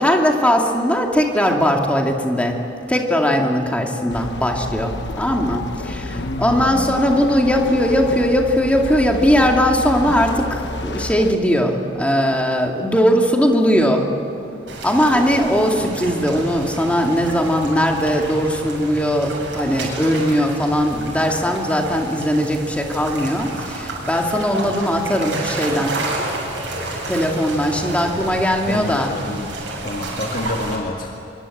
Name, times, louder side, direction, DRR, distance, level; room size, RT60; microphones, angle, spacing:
voice 1, 0.0-2.6 2.9-14.1 14.8-26.0 27.1-29.1, equal, 5° left, 1 dB, 2.4 m, -19 dB
sound 1, 4.1-11.3, left 2 dB, 65° left, 1.1 m, -30 dB
voice 2, 6.1-6.9 28.7-29.5 29.8-31.1, left 1 dB, 45° left, 0 dB, 2.0 m, -28 dB
sound 2, 14.7-30.8, right 2 dB, 75° right, 7.7 m, -30 dB
25.5 x 24.0 x 8.7 m, 3.0 s
head